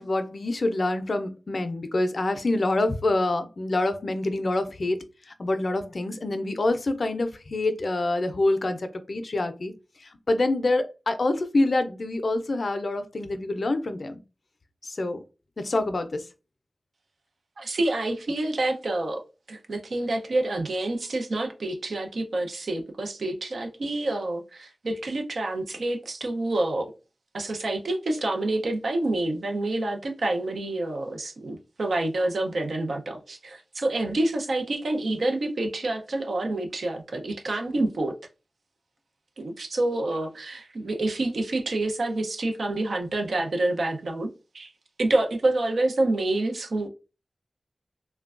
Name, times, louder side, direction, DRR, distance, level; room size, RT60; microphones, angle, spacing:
voice 1, 0.0-5.0 5.4-8.8 9.1-9.7 10.3-14.2 15.0-15.2 15.6-16.2, left 2 dB, 60° left, 0.4 m, -26 dB
voice 2, 17.6-26.9 27.3-38.2 39.4-44.3 44.5-44.7 45.0-46.9, right 2 dB, 90° right, 0.6 m, -27 dB
3.2 x 2.2 x 2.4 m
wide cardioid pair, 90°, 0 cm